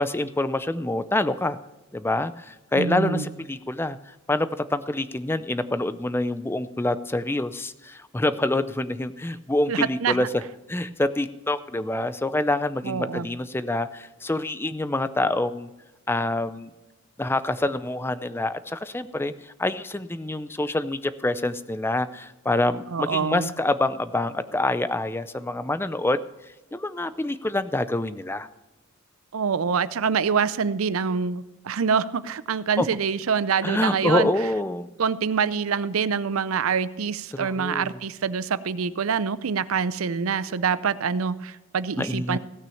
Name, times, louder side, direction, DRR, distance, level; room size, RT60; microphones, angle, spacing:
voice 1, 0.0-1.6 1.9-10.4 10.7-15.7 16.1-16.7 17.2-26.2 26.7-28.5 32.8-32.9 33.6-34.9 37.3-38.0 42.0-42.4, left 2 dB, 10° left, 13 dB, 0.4 m, -26 dB
voice 2, 2.8-3.3 9.7-10.3 12.8-13.3 22.9-23.5 29.3-34.3 35.0-42.4, right 6 dB, 85° right, 16 dB, 0.5 m, -25 dB
16.5 x 6.1 x 7.0 m, 1.1 s
head